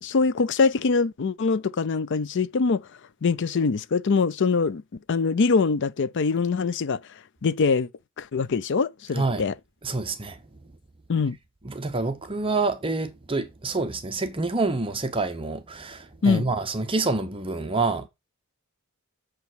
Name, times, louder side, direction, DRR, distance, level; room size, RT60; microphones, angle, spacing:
voice 1, 0.0-2.9 3.2-4.8 5.1-7.0 7.4-7.9 8.2-9.5 11.1-11.4 16.2-16.4, left 4 dB, 55° left, 0.5 m, -23 dB
voice 2, 9.8-10.7 11.6-18.1, right 3 dB, 25° right, 0.9 m, -27 dB
7.4 x 5.2 x 6.2 m
head